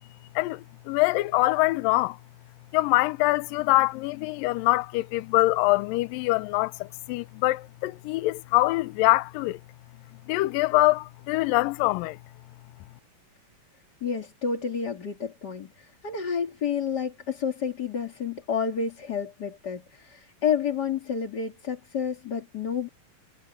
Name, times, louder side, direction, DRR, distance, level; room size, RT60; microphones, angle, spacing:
voice 1, 0.4-2.2 2.7-9.6 10.3-12.2, left 20 dB, 85° left, 2.3 m, -24 dB
voice 2, 14.0-22.9, left 7 dB, 35° left, 2.4 m, -30 dB
omnidirectional pair, 4.0 m